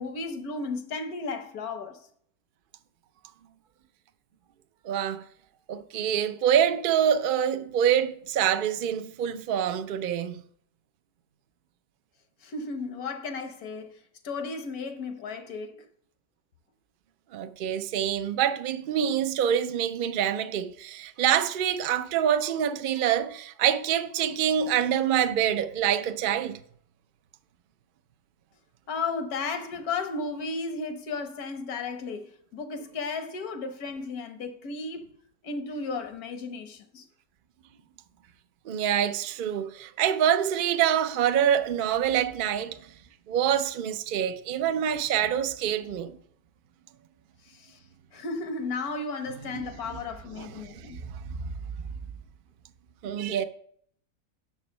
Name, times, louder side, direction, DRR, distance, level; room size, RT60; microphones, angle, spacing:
voice 1, 0.0-2.0 12.4-14.0 14.2-15.9 28.9-35.1 35.4-37.0 47.4-47.8 48.1-51.0, left 4 dB, 75° left, 1.4 m, -34 dB
voice 2, 4.8-5.2 5.7-10.4 17.3-26.6 38.7-42.8 43.3-46.2 49.5-49.6 50.4-51.5 53.0-53.4, right 9 dB, 80° right, 0.4 m, -26 dB
6.8 x 4.9 x 5.2 m
omnidirectional pair, 1.6 m